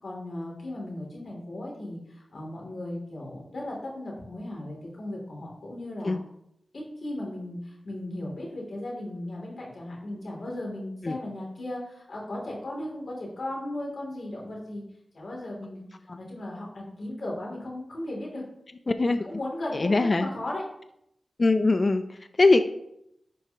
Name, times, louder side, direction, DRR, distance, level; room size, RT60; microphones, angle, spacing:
voice 1, 0.0-6.2 6.7-14.8 15.1-15.9 16.2-18.4 19.1-20.6, left 1 dB, 70° left, -3 dB, 2.8 m, -36 dB
voice 2, 18.9-19.2 19.7-20.3 21.4-22.6, left 3 dB, 45° left, 9 dB, 0.4 m, -22 dB
11.0 x 4.7 x 2.9 m, 0.78 s
cardioid pair, 55°, 0 cm